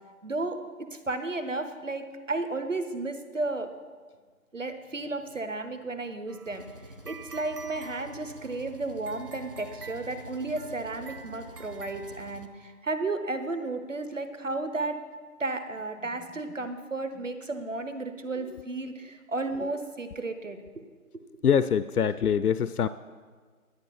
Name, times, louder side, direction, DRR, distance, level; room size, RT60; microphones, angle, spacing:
voice 1, 0.2-3.7 4.5-6.7 7.1-15.0 15.4-20.6, right 2 dB, 55° right, 9 dB, 1.2 m, -33 dB
sound 1, 6.3-12.8, right 4 dB, 80° right, 1.1 m, -49 dB
Engine, 6.5-12.5, right 1 dB, 40° right, 0.6 m, -47 dB
voice 2, 21.4-22.9, left 7 dB, 80° left, 14 dB, 0.5 m, -24 dB
11.5 x 8.7 x 5.9 m, 1.5 s
figure-of-eight pair, 165°, 45 cm